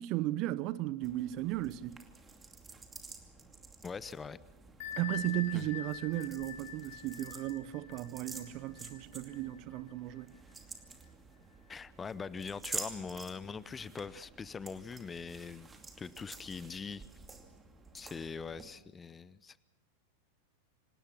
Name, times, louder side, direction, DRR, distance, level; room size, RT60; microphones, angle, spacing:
voice 1, 0.0-2.0 5.0-10.3, right 15 dB, 40° right, 0.7 m, -35 dB
sound 1, 1.0-18.6, right 4 dB, 15° right, 2.5 m, -49 dB
voice 2, 3.8-4.4 5.5-5.7 11.7-17.0 17.9-19.6, left 5 dB, 15° left, 0.7 m, -42 dB
Bell, 4.8-10.2, left 9 dB, 50° left, 1.5 m, -45 dB
26.5 x 18.5 x 6.0 m
figure-of-eight pair, 90°, 0 cm